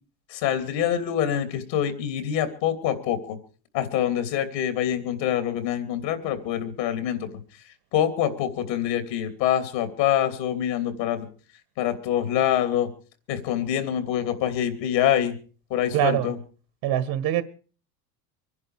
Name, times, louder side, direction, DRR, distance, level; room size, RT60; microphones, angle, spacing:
voice 1, 0.3-3.4 3.7-7.3 7.9-11.3 11.8-12.9 13.3-15.4 15.7-16.4, left 10 dB, 80° left, 3.1 m, -25 dB
voice 2, 15.9-16.3 16.8-17.4, right 12 dB, 60° right, 1.8 m, -23 dB
25.0 x 11.0 x 4.9 m
hypercardioid pair, 80°, 50 cm